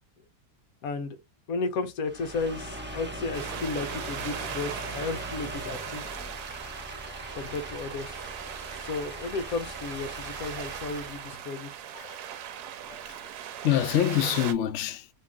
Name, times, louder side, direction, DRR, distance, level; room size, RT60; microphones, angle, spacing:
voice 1, 0.8-1.2 1.5-6.0 7.4-8.2 8.8-11.7, left 3 dB, 60° left, 1.1 m, -33 dB
sound 1, 2.0-11.4, right 1 dB, 15° right, 0.4 m, -40 dB
sound 2, 3.3-14.5, right 9 dB, 75° right, 1.1 m, -39 dB
voice 2, 11.9-12.3 12.9-13.2 13.6-15.1, left 11 dB, 90° left, 0.6 m, -26 dB
2.9 x 2.8 x 3.5 m
omnidirectional pair, 1.8 m